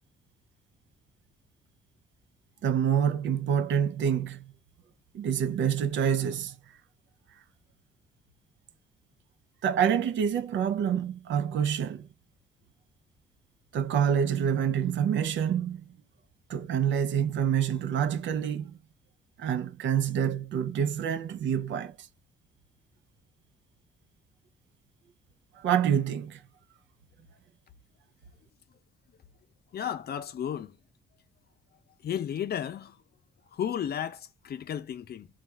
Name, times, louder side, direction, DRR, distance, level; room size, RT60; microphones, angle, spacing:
voice 1, 2.6-4.5 5.1-6.6 9.6-12.1 13.7-15.9 16.5-18.8 19.4-22.1 25.6-26.4, right 8 dB, 70° right, 0.6 m, -27 dB
voice 2, 29.7-30.8 32.0-33.0 33.5-35.3, left 9 dB, 50° left, 0.6 m, -33 dB
3.6 x 2.4 x 4.2 m
cardioid pair, 90°, 20 cm